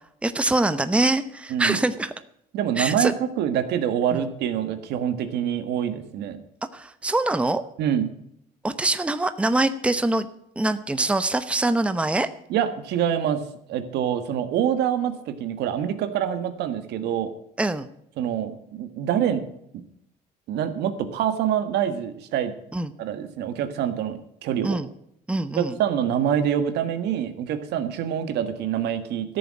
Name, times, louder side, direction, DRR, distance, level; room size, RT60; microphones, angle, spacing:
voice 1, 0.2-2.1 2.8-3.1 4.1-4.3 6.7-7.6 8.6-10.3 10.6-12.3 17.6-17.9 22.7-22.9 24.6-24.9 25.3-25.7, right 2 dB, 5° right, 11 dB, 0.8 m, -24 dB
voice 2, 2.5-3.1 3.4-6.4 7.8-8.1 12.5-13.4 13.7-17.3 18.2-19.4 20.5-22.5 23.0-24.8 25.6-29.4, right 9 dB, 80° right, 10 dB, 1.6 m, -25 dB
13.5 x 7.1 x 8.9 m, 0.76 s
cardioid pair, 110°, 17 cm